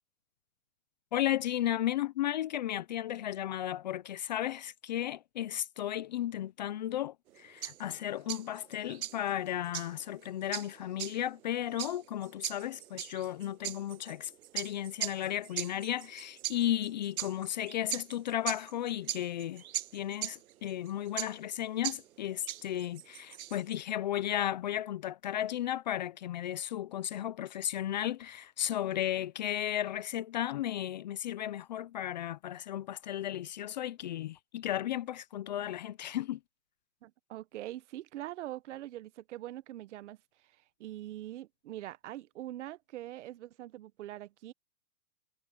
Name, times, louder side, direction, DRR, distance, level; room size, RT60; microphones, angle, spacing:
voice 1, 1.1-19.6 19.9-36.4, left 12 dB, 30° left, 0.5 m, -34 dB
sound 1, 7.3-23.8, right 12 dB, 70° right, 1.1 m, -40 dB
voice 2, 37.0-44.5, right 14 dB, 50° right, 1.0 m, -43 dB
hypercardioid pair, 155°, 44 cm